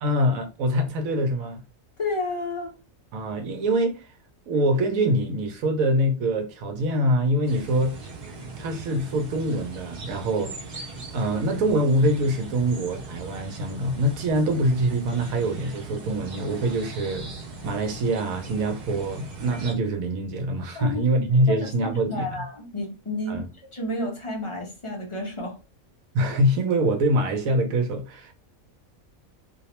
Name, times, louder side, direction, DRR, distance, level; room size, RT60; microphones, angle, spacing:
voice 1, 0.0-1.6 3.1-4.1 4.5-7.9 8.6-10.5 11.1-17.3 17.6-22.4 23.3-23.5 26.1-28.3, right 1 dB, 85° right, 1.0 m, -24 dB
voice 2, 2.0-2.7 20.7-21.0 21.5-23.4 23.7-25.6, left 1 dB, 40° left, 0.5 m, -31 dB
sound 1, 7.5-19.7, right 3 dB, 50° right, 0.5 m, -39 dB
2.6 x 2.0 x 2.9 m
omnidirectional pair, 1.4 m